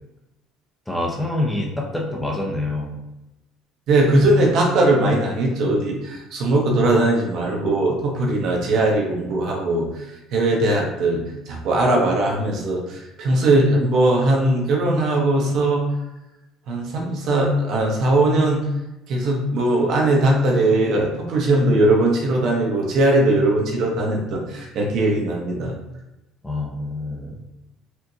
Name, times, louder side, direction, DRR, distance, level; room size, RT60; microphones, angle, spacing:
voice 1, 0.9-3.0 26.4-27.4, left 1 dB, 5° left, -2 dB, 0.5 m, -26 dB
voice 2, 3.9-10.1 10.3-15.9 16.7-18.7 19.1-25.7, right 2 dB, 50° right, 0 dB, 0.8 m, -19 dB
4.4 x 2.5 x 2.7 m, 0.94 s
cardioid pair, 155°, 0 cm